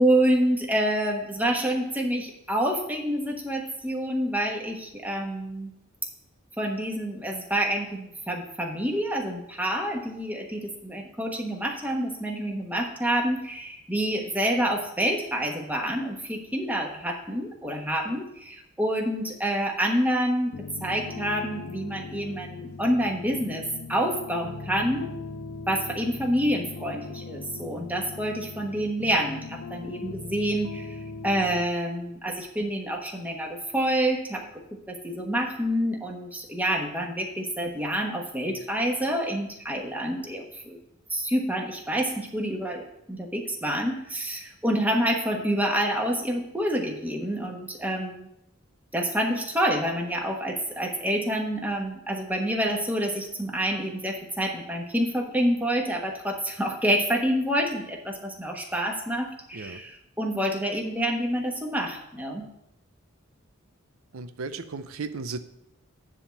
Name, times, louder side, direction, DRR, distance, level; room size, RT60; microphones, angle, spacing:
voice 1, 0.0-5.7 6.6-20.5 20.8-23.6 23.9-25.1 25.7-31.0 31.2-34.5 34.9-40.8 41.1-42.8 43.1-48.3 48.9-62.5, equal, 10° right, 1 dB, 1.2 m, -27 dB
sound 1, 20.5-31.7, left 3 dB, 85° left, 0.6 m, -40 dB
voice 2, 64.1-65.4, right 4 dB, 85° right, 10 dB, 0.6 m, -35 dB
9.8 x 3.6 x 6.9 m, 0.82 s
head